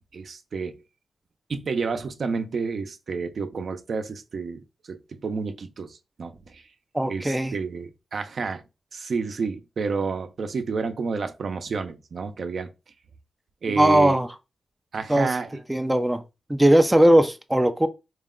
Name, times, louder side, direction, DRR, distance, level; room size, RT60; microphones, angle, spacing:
voice 1, 0.1-0.8 1.5-6.6 7.1-8.6 8.9-12.7 13.6-14.2 14.9-15.6, right 4 dB, 60° right, 0.6 m, -30 dB
voice 2, 6.9-7.6 13.7-14.3 15.1-15.3 15.7-16.2 16.5-17.9, right 1 dB, 10° right, 0.4 m, -19 dB
4.7 x 2.2 x 3.7 m
cardioid pair, 90°, 0 cm